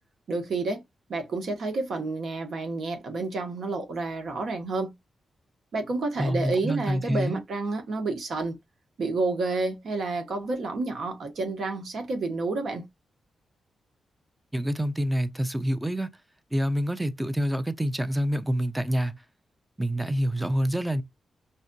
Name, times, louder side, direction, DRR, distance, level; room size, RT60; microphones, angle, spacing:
voice 1, 0.3-0.8 1.1-4.9 5.7-8.6 9.0-12.8, right 3 dB, 70° right, 1.3 m, -29 dB
voice 2, 6.2-7.4 14.5-16.1 16.5-19.2 19.8-21.0, equal, 10° right, 0.6 m, -27 dB
5.2 x 2.5 x 2.3 m
cardioid pair, 70°, 0 cm